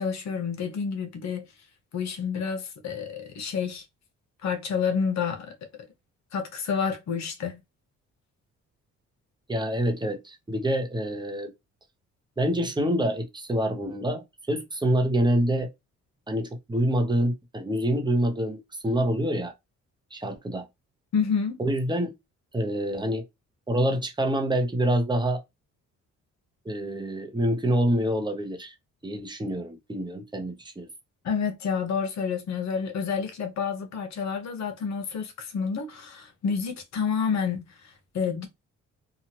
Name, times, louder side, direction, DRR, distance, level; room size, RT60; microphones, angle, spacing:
voice 1, 0.0-1.5 1.9-3.8 4.4-5.5 6.3-7.6 21.1-21.6 31.2-38.5, left 6 dB, 65° left, 1.0 m, -29 dB
voice 2, 9.5-11.5 12.4-15.7 16.3-19.5 20.1-20.7 21.6-22.1 22.5-23.3 23.7-25.4 26.6-28.7 29.0-30.9, right 1 dB, 15° right, 0.8 m, -26 dB
2.9 x 2.4 x 2.9 m
cardioid pair, 90°, 30 cm